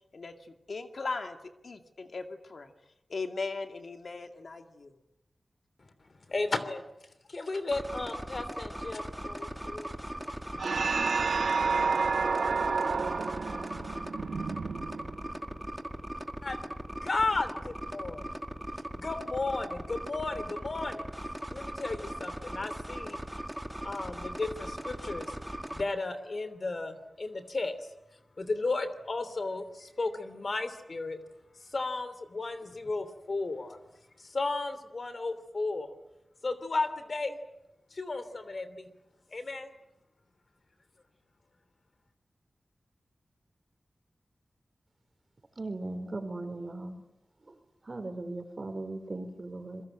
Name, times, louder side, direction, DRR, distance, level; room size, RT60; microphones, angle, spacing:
voice 1, 0.1-1.4 1.6-2.7 3.1-4.9, left 3 dB, 65° left, 6 dB, 2.4 m, -38 dB
voice 2, 5.8-10.0 16.4-18.3 18.9-23.2 23.8-31.2 31.5-35.9 36.4-37.4 37.9-38.9 39.3-39.7, left 3 dB, 50° left, 11 dB, 3.0 m, -35 dB
sound 1, 7.7-25.8, right 1 dB, 5° right, 2.1 m, -39 dB
sound 2, 10.6-15.4, right 4 dB, 85° right, 1.5 m, -30 dB
voice 3, 45.6-47.0 47.9-49.8, right 2 dB, 40° right, 7 dB, 4.3 m, -38 dB
27.5 x 23.0 x 9.1 m, 0.91 s
wide cardioid pair, 100°, 0 cm